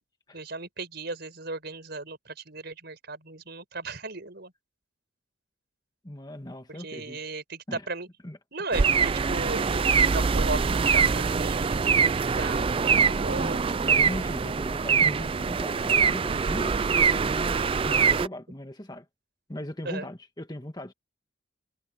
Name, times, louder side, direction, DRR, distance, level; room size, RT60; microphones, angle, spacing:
voice 1, 0.3-4.5 6.7-8.1 8.5-13.6 13.9-14.0 19.8-20.1, right 3 dB, 55° right, 5.6 m, -36 dB
voice 2, 6.0-7.2 7.7-7.8 8.2-8.4 13.0-13.6 13.8-19.0 19.5-20.9, left 1 dB, 20° left, 1.8 m, -38 dB
sound 1, 8.7-18.3, right 5 dB, 25° right, 0.3 m, -24 dB
head